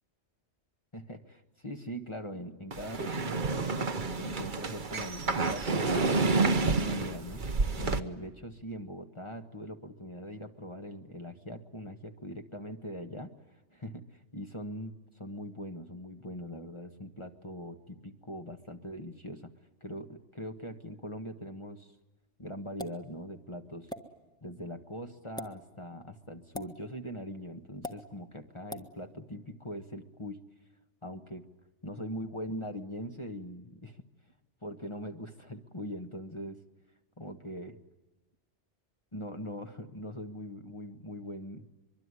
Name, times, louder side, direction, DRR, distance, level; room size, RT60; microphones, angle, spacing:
voice 1, 0.9-3.7 4.2-7.5 7.8-19.5 19.8-21.9 22.4-23.9 24.4-30.4 31.0-31.4 31.8-34.0 34.6-36.6 37.2-37.8 39.1-41.7, equal, 25° left, 5 dB, 1.4 m, -41 dB
sound 1, 2.7-8.0, right 3 dB, 45° right, 1.2 m, -29 dB
sound 2, 22.8-23.0 23.9-24.0 25.2-25.5 26.5-26.7 27.8-28.0 28.7-28.9, left 1 dB, 5° left, 1.6 m, -39 dB
24.0 x 23.5 x 9.8 m, 1.1 s
omnidirectional pair, 1.2 m